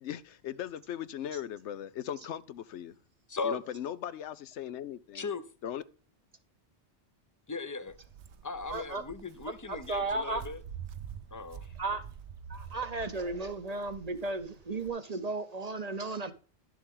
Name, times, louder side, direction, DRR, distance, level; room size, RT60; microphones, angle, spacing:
voice 1, 0.0-3.0 3.4-5.3 5.6-5.8, left 10 dB, 85° left, 1.0 m, -38 dB
voice 2, 3.3-3.6 5.1-5.4 7.5-8.0 8.4-10.6 11.3-11.7, left 4 dB, 20° left, 0.6 m, -37 dB
Walk footsteps, 7.9-14.9, right 7 dB, 75° right, 1.0 m, -47 dB
voice 3, 8.7-9.0 9.5-10.4 11.8-12.0 12.5-16.3, right 3 dB, 40° right, 0.8 m, -34 dB
11.0 x 7.0 x 3.7 m
omnidirectional pair, 1.2 m